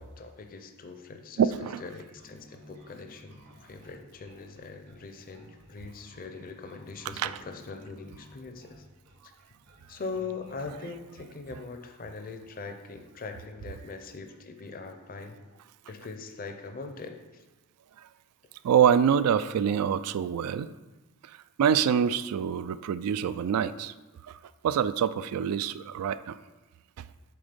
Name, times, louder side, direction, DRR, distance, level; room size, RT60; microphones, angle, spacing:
voice 1, 0.0-1.4 1.8-8.8 9.9-15.4 15.9-17.4, left 4 dB, 40° left, 6 dB, 0.5 m, -41 dB
voice 2, 1.4-1.8 7.2-7.4 18.0-18.1 18.6-20.7 21.2-23.9 24.2-24.4 24.6-26.4, right 8 dB, 85° right, 15 dB, 0.3 m, -25 dB
Bass guitar, 2.2-11.7, equal, 70° right, 2.2 m, -55 dB
7.7 x 3.5 x 5.1 m, 1.2 s
head